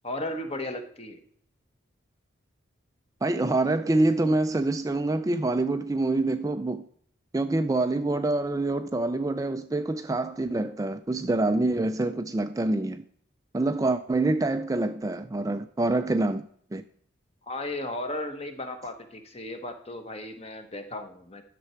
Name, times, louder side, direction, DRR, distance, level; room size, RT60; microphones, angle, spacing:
voice 1, 0.0-1.2 17.5-21.4, left 1 dB, 30° left, 1.1 m, -35 dB
voice 2, 3.2-6.8 7.3-13.0 13.5-16.4 16.7-16.8, right 2 dB, 15° right, 0.3 m, -26 dB
11.0 x 6.8 x 4.4 m
head